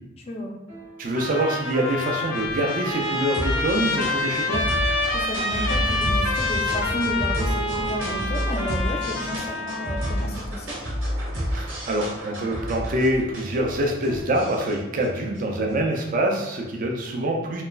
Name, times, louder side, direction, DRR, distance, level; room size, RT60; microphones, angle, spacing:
sound 1, 0.7-16.2, equal, 90° right, 1.1 m, -31 dB
voice 1, 1.0-4.6 11.5-17.6, right 1 dB, 45° right, 1 dB, 0.4 m, -25 dB
Trumpet, 1.1-10.3, left 2 dB, 85° left, 0.5 m, -27 dB
voice 2, 5.1-10.8, equal, 30° left, 1 dB, 0.3 m, -32 dB
3.0 x 2.3 x 2.3 m, 0.93 s
head